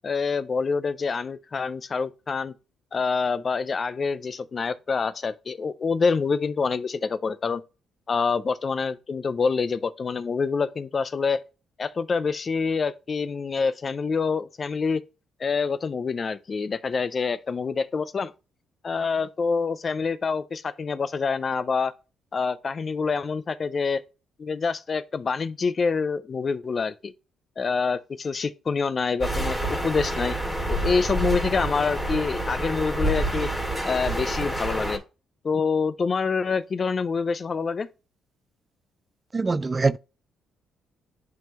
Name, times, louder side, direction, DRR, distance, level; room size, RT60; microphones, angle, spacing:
voice 1, 0.0-2.5 2.9-7.6 8.1-11.4 11.8-15.0 15.4-18.3 18.8-21.9 22.3-24.0 24.4-27.1 27.6-30.4 30.7-33.5 33.8-35.0 35.4-37.9, left 5 dB, 40° left, 0.5 m, -26 dB
sound 1, 29.2-35.0, right 1 dB, 5° left, 2.7 m, -28 dB
voice 2, 39.3-40.0, right 3 dB, 25° right, 0.3 m, -23 dB
10.5 x 3.7 x 2.9 m
cardioid pair, 90°, 0 cm